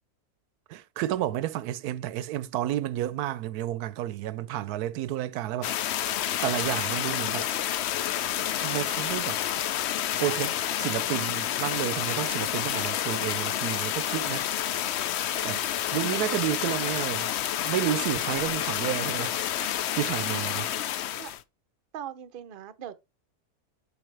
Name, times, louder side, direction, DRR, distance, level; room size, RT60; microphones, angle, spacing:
voice 1, 0.7-5.7 6.4-7.5 8.6-9.4 10.2-14.5 15.4-15.6 15.9-17.3 17.6-20.7, right 13 dB, 90° right, 1.1 m, -31 dB
sound 1, 5.6-21.4, left 11 dB, 70° left, 0.6 m, -29 dB
voice 2, 21.9-22.9, right 10 dB, 55° right, 0.6 m, -40 dB
7.0 x 5.7 x 3.3 m
omnidirectional pair, 1.6 m